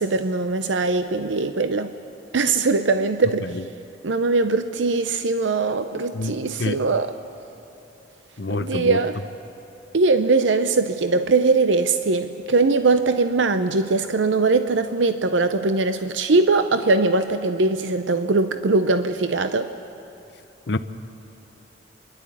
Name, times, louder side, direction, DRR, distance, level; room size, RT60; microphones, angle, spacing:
voice 1, 0.0-1.9 2.3-3.6 4.0-7.1 8.5-9.2 9.9-19.7, right 3 dB, 85° right, 9 dB, 0.7 m, -21 dB
voice 2, 6.1-6.8 8.4-9.0 20.7-20.8, left 2 dB, 70° left, 12 dB, 0.7 m, -27 dB
28.5 x 12.0 x 8.4 m, 2.8 s
head